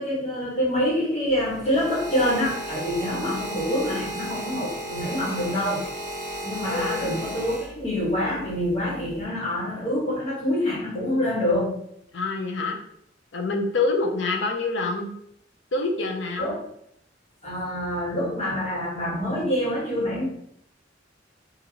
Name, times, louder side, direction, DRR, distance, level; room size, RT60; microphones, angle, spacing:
voice 1, 0.0-5.8 6.4-11.8 16.4-16.6 17.4-20.2, equal, 35° left, -6 dB, 1.5 m, -26 dB
sound 1, 1.3-8.1 8.9-9.2, right 1 dB, 55° right, 1.5 m, -34 dB
voice 2, 6.7-7.3 12.1-12.8 13.3-15.1 15.7-16.5, left 3 dB, 75° left, 3 dB, 0.6 m, -26 dB
3.9 x 2.6 x 2.9 m, 0.71 s
head